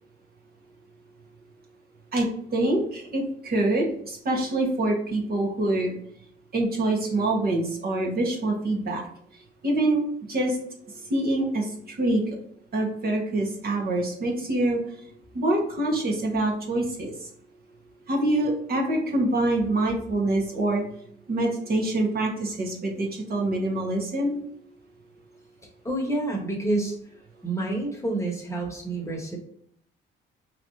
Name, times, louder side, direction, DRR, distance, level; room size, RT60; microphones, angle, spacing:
voice 1, 2.1-6.0 6.5-9.1 9.6-10.6 11.1-12.2 12.7-14.8 15.3-17.3 18.1-20.8 21.3-24.4, right 2 dB, 50° right, 0 dB, 1.2 m, -25 dB
voice 2, 25.8-27.0 27.4-29.4, right 2 dB, 15° left, -1 dB, 1.2 m, -28 dB
4.8 x 3.1 x 2.7 m, 0.65 s
cardioid pair, 90°, 20 cm